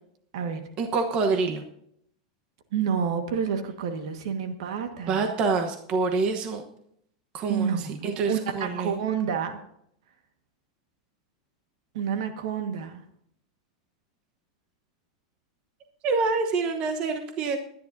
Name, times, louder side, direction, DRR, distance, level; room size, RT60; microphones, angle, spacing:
voice 1, 0.8-1.6 5.1-6.6 7.3-7.8 8.0-9.0 16.0-17.6, right 4 dB, 30° right, 5 dB, 1.1 m, -26 dB
voice 2, 2.7-5.3 7.5-9.6 11.9-13.0, right 7 dB, 65° right, 7 dB, 1.6 m, -29 dB
21.5 x 10.5 x 2.7 m, 0.70 s
supercardioid pair, 160°, 3 cm